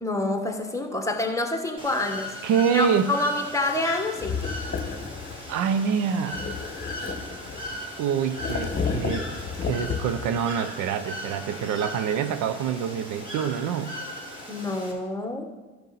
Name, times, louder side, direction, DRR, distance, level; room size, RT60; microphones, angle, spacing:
voice 1, 0.0-2.3 2.7-4.4 14.5-15.5, left 2 dB, 10° left, 5 dB, 1.5 m, -27 dB
Bird / Water, 1.8-14.9, left 1 dB, 15° right, 3.2 m, -38 dB
voice 2, 2.4-3.1 5.5-6.4 8.0-9.3 9.6-13.9, right 7 dB, 60° right, 10 dB, 0.7 m, -26 dB
sound 1, 4.1-5.5 6.3-7.8 8.3-10.3, left 5 dB, 30° left, 1.5 m, -31 dB
12.0 x 6.9 x 4.2 m, 1.2 s
hypercardioid pair, 75°, 35 cm